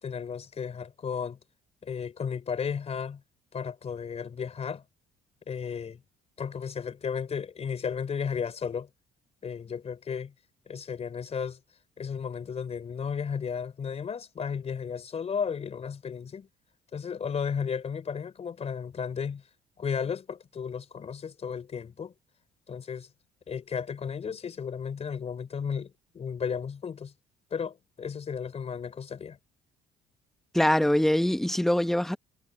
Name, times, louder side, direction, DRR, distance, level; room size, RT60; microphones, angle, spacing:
voice 1, 0.0-1.4 1.8-3.2 3.5-4.8 5.5-6.0 6.4-8.9 9.4-10.3 10.7-11.6 12.0-16.5 16.9-19.4 19.8-22.1 22.7-23.1 23.5-27.1 27.5-29.4, left 6 dB, 40° left, 4.3 m, -34 dB
voice 2, 30.5-32.2, left 1 dB, ahead, 1.2 m, -23 dB
cardioid pair, 110°, 17 cm